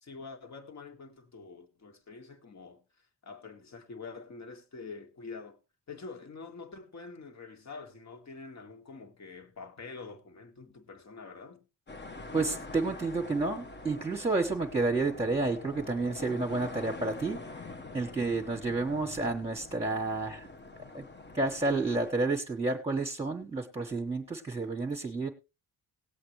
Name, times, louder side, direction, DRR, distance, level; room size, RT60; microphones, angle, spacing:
voice 1, 0.0-5.6 5.9-11.6, left 4 dB, 40° left, 1.9 m, -46 dB
sound 1, 11.9-22.1, left 3 dB, 25° left, 1.0 m, -45 dB
voice 2, 12.3-20.5 20.9-21.0 21.3-25.3, right 3 dB, 15° right, 1.4 m, -30 dB
19.0 x 7.9 x 3.2 m
wide cardioid pair, 125°, 40 cm